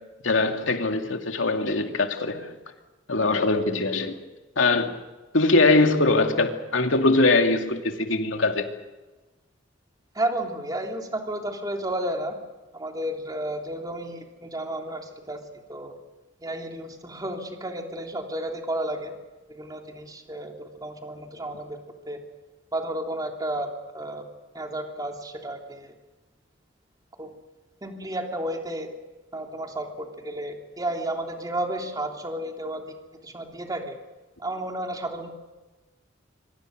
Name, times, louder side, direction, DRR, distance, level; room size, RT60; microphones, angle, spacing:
voice 1, 0.2-2.5 3.1-4.1 4.6-4.9 5.3-8.7, left 2 dB, 85° left, 2.5 m, -22 dB
voice 2, 10.1-12.4 12.7-15.9 16.4-19.1 19.5-21.8 22.1-22.2 22.7-24.3 24.5-25.9 27.2-27.3 27.8-28.9 29.3-32.9 33.2-34.0 34.4-35.3, right 1 dB, 20° right, 3.2 m, -32 dB
26.0 x 24.5 x 6.6 m
head